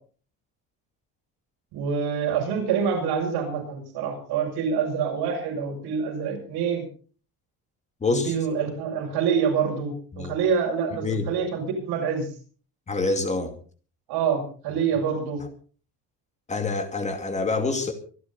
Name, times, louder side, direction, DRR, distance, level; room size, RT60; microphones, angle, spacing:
voice 1, 1.7-6.8 8.1-12.3 14.1-15.4, right 6 dB, 75° right, 0 dB, 7.2 m, -26 dB
voice 2, 8.0-8.3 10.1-10.4 11.0-11.3 12.9-13.5 16.5-17.9, left 3 dB, 15° left, 7 dB, 2.4 m, -26 dB
25.0 x 11.0 x 4.2 m, 0.41 s
cardioid pair, 170°, 39 cm